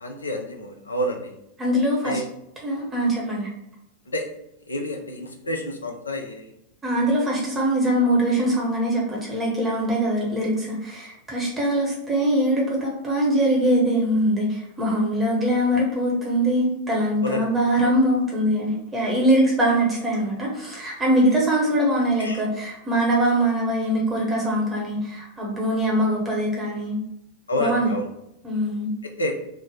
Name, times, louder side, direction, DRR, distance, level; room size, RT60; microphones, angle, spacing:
voice 1, 0.0-1.4 2.0-2.3 4.1-4.3 4.7-6.5 17.2-17.5 17.8-17.9 22.2-22.4 27.5-28.1 29.2-29.3, equal, 75° left, 4 dB, 0.5 m, -29 dB
voice 2, 1.6-2.2 2.6-3.5 6.8-27.0 27.5-28.0 28.4-28.9, right 1 dB, 15° right, -4 dB, 0.8 m, -22 dB
3.2 x 2.0 x 3.7 m, 0.82 s
figure-of-eight pair, 90°, 0 cm